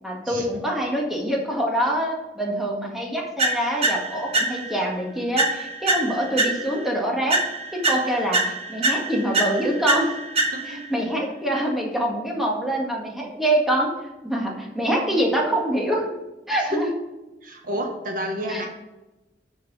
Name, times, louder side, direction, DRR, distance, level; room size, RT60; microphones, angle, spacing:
voice 1, 0.0-7.4 7.7-10.1 10.7-13.9 14.2-16.1 16.5-16.9 18.5-18.6, right 1 dB, ahead, -2 dB, 1.7 m, -25 dB
sound 1, 3.4-4.9 5.4-6.9 7.3-10.9, right 2 dB, 35° right, 1.2 m, -25 dB
voice 2, 10.5-10.8 16.7-16.8 17.4-18.7, equal, 50° right, 3 dB, 1.1 m, -29 dB
6.6 x 6.0 x 6.2 m, 1.0 s
head